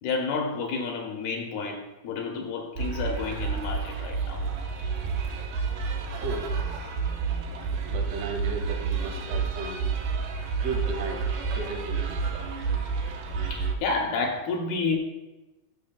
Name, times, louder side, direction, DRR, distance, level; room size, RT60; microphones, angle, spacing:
voice 1, 0.0-4.4 13.5-15.0, left 4 dB, 75° left, 1 dB, 2.6 m, -30 dB
sound 1, 2.7-13.7, right 5 dB, 90° right, 1.7 m, -30 dB
voice 2, 6.1-6.5 7.9-10.0 10.6-12.2, right 2 dB, 70° right, 1 dB, 3.7 m, -35 dB
13.0 x 6.4 x 2.3 m, 1.1 s
omnidirectional pair, 4.9 m